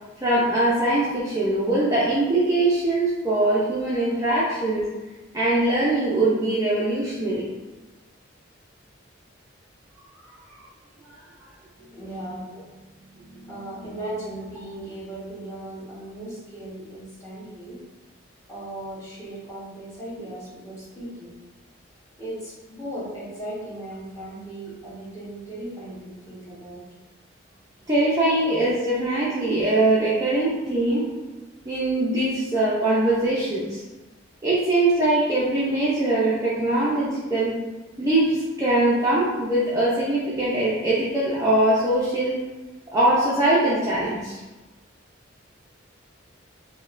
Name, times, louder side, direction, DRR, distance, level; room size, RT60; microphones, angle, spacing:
voice 1, 0.2-4.9 5.3-7.5 27.9-31.1 31.7-33.8 34.4-37.6 38.0-42.4 42.9-44.4, right 2 dB, 15° right, -8 dB, 0.5 m, -22 dB
voice 2, 11.8-17.8 18.5-21.3 22.2-26.8, right 1 dB, 15° left, -10 dB, 1.2 m, -37 dB
5.1 x 2.1 x 2.4 m, 1.2 s
head